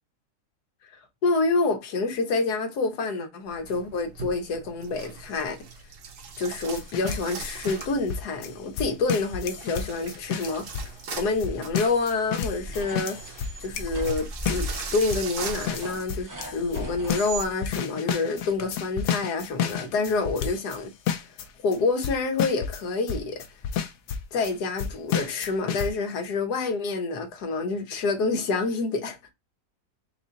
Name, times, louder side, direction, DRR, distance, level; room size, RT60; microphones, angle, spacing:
voice 1, 0.9-5.6 6.4-13.3 13.6-21.3 21.6-23.4 24.3-29.2, left 3 dB, 85° left, 1.5 m, -28 dB
sound 1, 3.5-16.1, right 5 dB, 60° right, 1.1 m, -41 dB
sound 2, 6.6-20.8 21.1-21.5 21.7-21.8 22.0-22.8 23.1-24.5 24.8-25.9, left 8 dB, 70° left, 1.0 m, -31 dB
sound 3, 12.6-17.5, right 2 dB, 20° right, 0.5 m, -37 dB
4.0 x 2.5 x 3.9 m
omnidirectional pair, 1.7 m